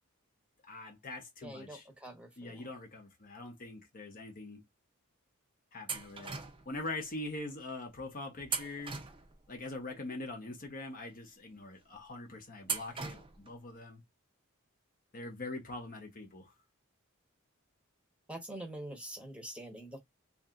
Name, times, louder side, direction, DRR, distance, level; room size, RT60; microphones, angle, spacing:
voice 1, 0.7-1.9 2.4-4.6 5.7-6.4 6.7-9.0 9.5-14.0 15.1-16.5, left 2 dB, 40° left, 1.0 m, -43 dB
voice 2, 1.4-2.7 18.3-20.0, right 1 dB, 5° right, 1.0 m, -45 dB
sound 1, 5.9-6.8 8.4-9.6 12.6-13.5, right 5 dB, 25° right, 0.6 m, -39 dB
2.8 x 2.7 x 3.7 m
head